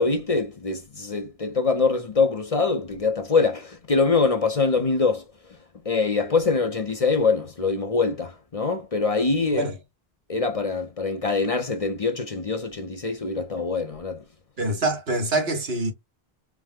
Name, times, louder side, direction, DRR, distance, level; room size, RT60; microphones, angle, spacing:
voice 1, 0.0-5.2 5.9-9.6 10.3-14.2, left 4 dB, 40° left, 0.7 m, -24 dB
voice 2, 14.6-15.9, right 2 dB, 80° right, 1.6 m, -25 dB
4.7 x 2.2 x 3.6 m
omnidirectional pair, 1.0 m